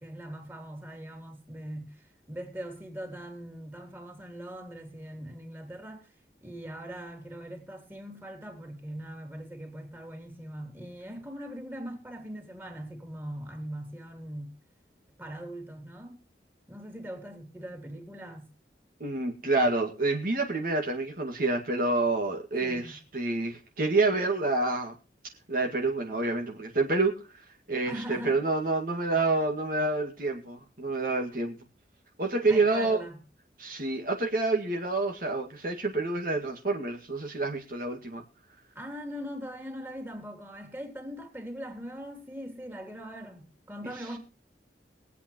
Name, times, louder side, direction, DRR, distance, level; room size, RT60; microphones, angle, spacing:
voice 1, 0.0-6.1 6.4-14.6 15.2-16.2 16.7-18.5 22.6-23.0 27.8-28.4 32.5-33.2 38.7-44.2, equal, 10° right, 3.3 m, -41 dB
voice 2, 19.0-24.9 25.5-27.1 27.7-31.6 32.2-33.0 33.6-38.2, right 3 dB, 50° right, 2.1 m, -28 dB
23.0 x 8.5 x 3.1 m
head